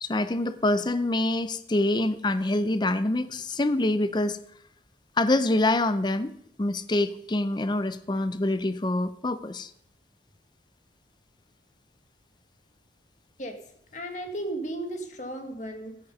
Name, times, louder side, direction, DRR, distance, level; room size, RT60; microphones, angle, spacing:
voice 1, 0.0-4.4 5.2-6.3 6.6-9.7, left 2 dB, 25° left, 13 dB, 0.5 m, -25 dB
voice 2, 13.9-16.0, right 1 dB, 40° left, 5 dB, 1.7 m, -34 dB
13.0 x 9.6 x 5.4 m, 0.70 s
head